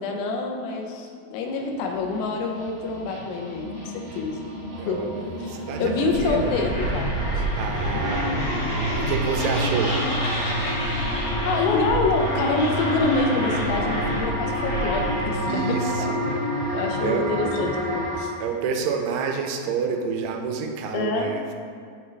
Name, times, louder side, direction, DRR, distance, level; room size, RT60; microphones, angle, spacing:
voice 1, 0.0-4.4 4.9-5.1 5.4-5.5 5.8-7.4 7.9-8.0 11.4-15.6 16.0-16.1 16.7-18.3 20.9-21.4, left 3 dB, 80° left, 2 dB, 2.4 m, -26 dB
sound 1, 1.6-18.2, equal, 50° right, 2.1 m, -30 dB
voice 2, 4.8-5.1 5.4-6.5 7.6-8.6 9.0-10.0 15.5-16.2 17.0-17.3 18.4-21.5, right 6 dB, 90° right, 3 dB, 2.7 m, -28 dB
sound 2, 6.1-15.5, equal, 50° left, 1.5 m, -28 dB
10.5 x 3.6 x 3.2 m, 2.2 s
omnidirectional pair, 4.5 m